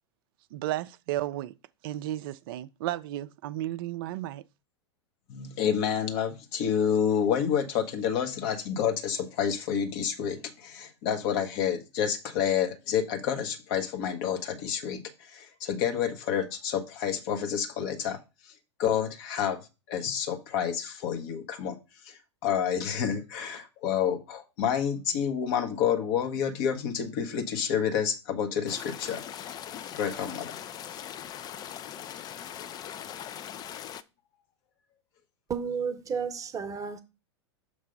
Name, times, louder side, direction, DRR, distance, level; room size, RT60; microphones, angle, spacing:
voice 1, 0.5-1.5 1.8-4.4, right 14 dB, 50° right, 0.4 m, -33 dB
voice 2, 5.3-18.2 18.8-19.6 19.9-21.8 22.0-29.2 30.0-30.5, left 8 dB, 50° left, 1.3 m, -29 dB
sound 1, 28.7-34.0, left 10 dB, 25° left, 0.4 m, -40 dB
voice 3, 35.5-37.0, right 6 dB, 20° right, 0.9 m, -32 dB
6.6 x 3.3 x 5.2 m
figure-of-eight pair, 95°, 15 cm